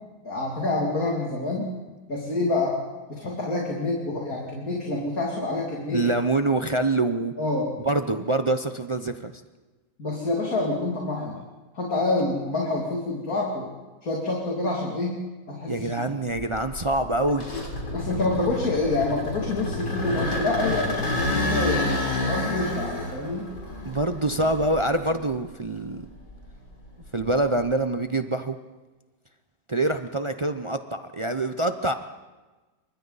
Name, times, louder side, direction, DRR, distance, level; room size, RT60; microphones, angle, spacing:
voice 1, 0.2-1.7 2.1-2.7 3.1-6.1 7.4-7.7 10.0-11.4 11.7-13.7 14.0-15.2 15.5-15.9 17.9-21.9 22.2-23.5, left 2 dB, 55° left, -2 dB, 3.2 m, -27 dB
voice 2, 5.9-7.3 7.8-9.3 15.7-17.4 23.9-26.1 27.1-28.6 29.7-31.9, right 2 dB, 45° right, 8 dB, 0.4 m, -25 dB
sound 1, 16.3-25.4 25.8-27.7, left 2 dB, 80° left, 4.1 m, -29 dB
27.5 x 24.5 x 4.1 m, 1.2 s
omnidirectional pair, 1.9 m